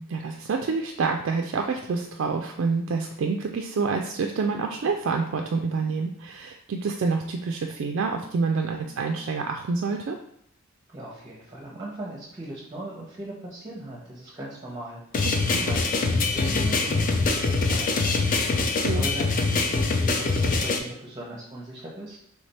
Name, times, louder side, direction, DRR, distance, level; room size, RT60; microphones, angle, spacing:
voice 1, 0.0-10.2 15.4-15.6 18.5-19.0, right 4 dB, 60° right, 3 dB, 0.3 m, -27 dB
voice 2, 10.9-22.2, right 1 dB, 20° right, -4 dB, 0.7 m, -39 dB
sound 1, 15.1-20.8, left 3 dB, 40° left, 0.4 m, -24 dB
3.3 x 3.2 x 4.2 m, 0.71 s
head